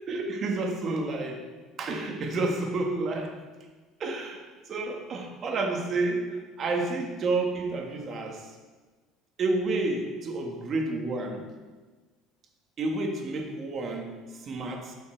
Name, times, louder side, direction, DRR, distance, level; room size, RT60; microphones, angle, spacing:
voice 1, 0.1-1.4 1.8-3.4 4.0-4.4 4.7-6.3 6.6-8.5 9.4-11.4 12.8-14.9, right 2 dB, 45° right, 2 dB, 1.6 m, -30 dB
12.0 x 5.7 x 4.5 m, 1.3 s
supercardioid pair, 110°, 0 cm